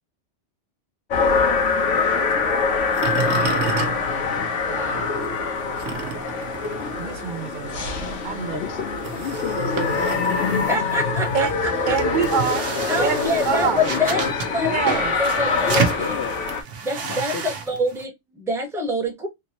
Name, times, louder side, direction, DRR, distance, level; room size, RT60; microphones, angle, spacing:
sound 1, 1.1-16.6, left 4 dB, 85° left, 1.2 m, -24 dB
sound 2, 1.3-4.9 5.2-18.0, right 6 dB, 85° right, 1.1 m, -31 dB
voice 1, 4.7-5.1 7.0-8.6 11.3-11.5 11.9-12.7 13.0-13.9 14.7-15.1, right 6 dB, 60° right, 0.5 m, -26 dB
voice 2, 8.5-10.8 13.9-15.0 15.6-16.3 17.0-17.4, left 7 dB, 65° left, 0.9 m, -33 dB
voice 3, 10.7-12.0 12.9-14.2 14.5-16.1 16.8-19.3, left 1 dB, 5° right, 0.9 m, -26 dB
3.4 x 2.9 x 2.7 m
omnidirectional pair, 1.2 m